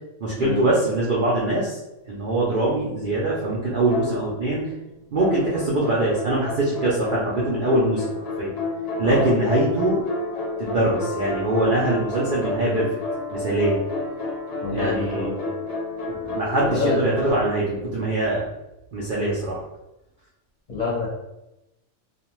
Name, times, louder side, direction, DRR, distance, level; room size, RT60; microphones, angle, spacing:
voice 1, 0.2-1.8 2.0-4.6 5.1-8.0 8.4-8.5 9.0-10.0 10.6-12.9 13.3-13.8 14.7-15.3 16.1-18.5 18.9-19.6, right 1 dB, 60° right, -6 dB, 0.5 m, -23 dB
sound 1, 3.9-4.7 5.2-17.4, left 2 dB, 80° left, 0.3 m, -30 dB
voice 2, 9.0-9.4 14.6-15.5 16.6-17.0 20.7-21.1, left 3 dB, 40° left, -7 dB, 0.7 m, -27 dB
2.4 x 2.2 x 3.0 m, 0.93 s
omnidirectional pair, 1.4 m